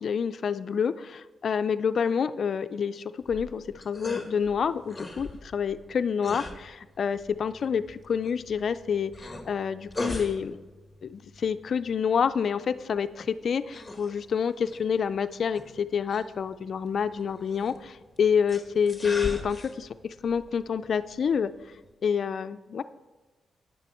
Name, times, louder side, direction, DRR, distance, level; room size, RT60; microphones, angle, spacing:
voice 1, 0.0-10.6 11.0-21.5 22.0-22.8, left 7 dB, 60° left, 11 dB, 0.4 m, -28 dB
sound 1, 3.2-21.9, left 2 dB, 10° left, 1.6 m, -42 dB
12.0 x 9.7 x 4.3 m, 1.2 s
cardioid pair, 110°, 0 cm